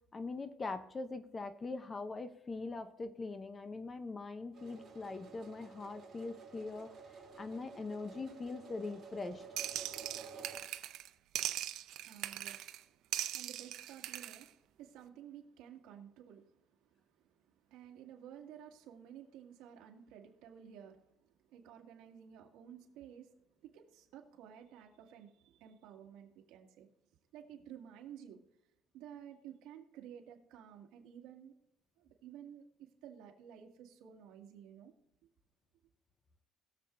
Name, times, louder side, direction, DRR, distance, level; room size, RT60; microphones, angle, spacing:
voice 1, 0.1-6.9 7.4-9.4, left 3 dB, 20° left, 10 dB, 0.6 m, -42 dB
sound 1, 4.5-10.6, right 5 dB, 30° right, 4.4 m, -52 dB
sound 2, 9.6-11.1 11.4-12.8 13.1-14.4, right 13 dB, 65° right, 0.6 m, -40 dB
voice 2, 11.9-23.4 23.6-26.9 27.3-28.4 28.9-31.5 32.0-34.9, right 9 dB, 80° right, 2 dB, 1.9 m, -54 dB
21.0 x 7.3 x 2.6 m, 0.86 s
cardioid pair, 175°, 0 cm